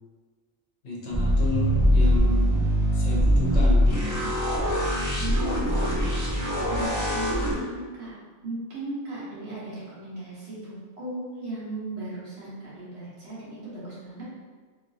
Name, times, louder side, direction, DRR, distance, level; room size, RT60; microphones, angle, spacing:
voice 1, 0.8-2.6 2.9-4.4, left 2 dB, 60° left, -4 dB, 1.1 m, -32 dB
sound 1, 1.1-7.5, equal, 20° right, 0.6 m, -22 dB
voice 2, 5.2-5.7 6.7-8.1 8.4-14.3, right 1 dB, 55° right, -8 dB, 1.4 m, -36 dB
3.1 x 3.0 x 2.7 m, 1.5 s
omnidirectional pair, 1.4 m